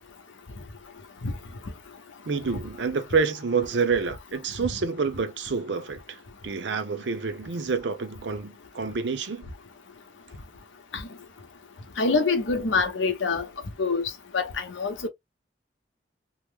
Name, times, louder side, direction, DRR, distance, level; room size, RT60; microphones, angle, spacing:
voice 1, 2.3-6.2 6.4-9.4, right 5 dB, 70° right, 0.6 m, -28 dB
voice 2, 12.0-13.4 13.8-14.0 14.3-15.1, left 4 dB, 85° left, 0.8 m, -25 dB
3.0 x 2.0 x 3.4 m
head